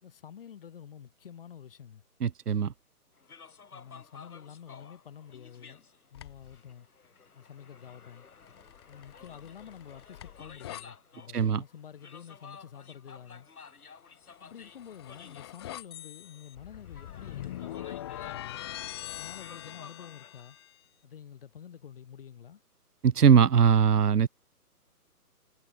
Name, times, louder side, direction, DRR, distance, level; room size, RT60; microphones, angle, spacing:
voice 1, 0.0-2.0 3.7-5.8 6.1-6.9 7.3-8.3 8.9-13.5 14.4-18.7 19.1-20.6 21.0-22.6, left 8 dB, 35° left, 3.6 m, -48 dB
voice 2, 2.2-2.7 11.3-11.6 23.0-24.3, right 7 dB, 75° right, 1.3 m, -21 dB
sound 1, 3.2-20.4, left 5 dB, 65° left, 5.4 m, -53 dB
sound 2, 6.1-6.6 8.5-10.9 14.4-20.8, left 13 dB, 15° left, 1.6 m, -43 dB
hypercardioid pair, 170°, 47 cm